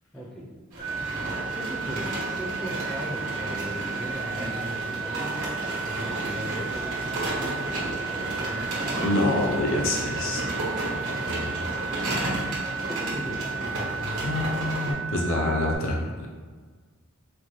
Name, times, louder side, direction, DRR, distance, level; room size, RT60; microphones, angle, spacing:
voice 1, 0.1-0.5 1.5-9.1 12.9-14.1, equal, 5° left, -5 dB, 0.4 m, -38 dB
sound 1, 0.7-14.9, right 1 dB, 85° right, 1.2 m, -32 dB
sound 2, 0.8-15.7, right 6 dB, 50° right, 0.7 m, -34 dB
voice 2, 9.0-10.4 11.3-11.8 12.7-12.8 14.0-16.3, left 2 dB, 65° left, -1 dB, 0.5 m, -27 dB
4.4 x 2.1 x 2.9 m, 1.5 s
head